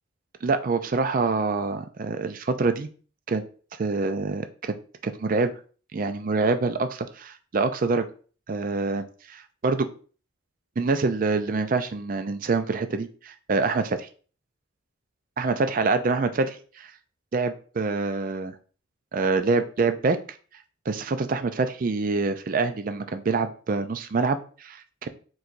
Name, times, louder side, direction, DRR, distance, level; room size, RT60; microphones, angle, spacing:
voice 1, 0.4-2.9 3.3-3.4 3.8-4.7 5.0-5.5 5.9-8.1 8.5-9.9 10.8-14.1 15.4-16.9 17.3-18.5 19.1-20.2 20.9-25.1, right 3 dB, 45° right, 9 dB, 0.4 m, -26 dB
4.6 x 3.9 x 2.6 m, 0.40 s
head